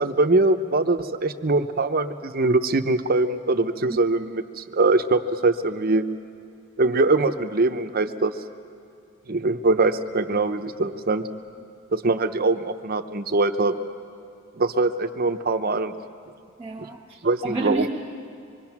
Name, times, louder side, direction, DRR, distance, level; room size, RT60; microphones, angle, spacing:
voice 1, 0.0-6.1 6.8-8.3 9.3-11.2 11.9-13.8 14.6-15.9 17.2-17.9, right 2 dB, 45° right, 0.8 m, -22 dB
voice 2, 16.6-17.9, right 2 dB, 10° right, 1.3 m, -30 dB
25.5 x 22.5 x 6.0 m
head